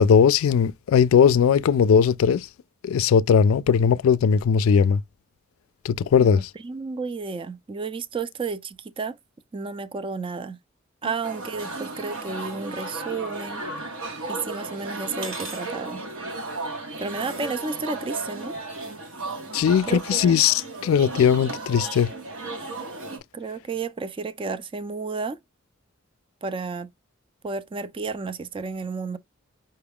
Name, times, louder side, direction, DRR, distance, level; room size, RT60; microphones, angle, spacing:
voice 1, 0.0-2.5 2.8-5.0 5.8-6.5 19.5-22.1, left 7 dB, 90° left, 0.3 m, -19 dB
voice 2, 6.2-9.2 9.5-10.6 11.0-13.6 14.3-16.0 17.0-18.6 19.9-20.3 23.3-25.4 26.4-26.9 27.4-29.2, right 4 dB, 25° right, 0.4 m, -32 dB
sound 1, 11.2-23.2, right 2 dB, 85° right, 1.5 m, -34 dB
5.5 x 2.3 x 3.4 m
head